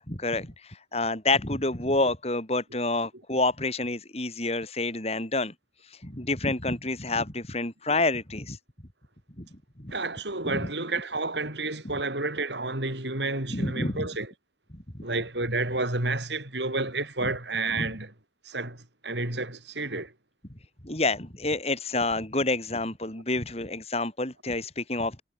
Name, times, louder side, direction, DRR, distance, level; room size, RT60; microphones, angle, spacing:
voice 1, 0.0-5.5 5.8-8.6 9.4-9.5 9.8-9.9 10.5-10.7 13.5-14.1 17.2-17.3 17.8-17.9 20.8-25.2, left 2 dB, 35° left, 4.0 m, -28 dB
voice 2, 9.9-14.3 15.0-18.1 18.4-20.1, right 2 dB, 80° right, 7.8 m, -30 dB
head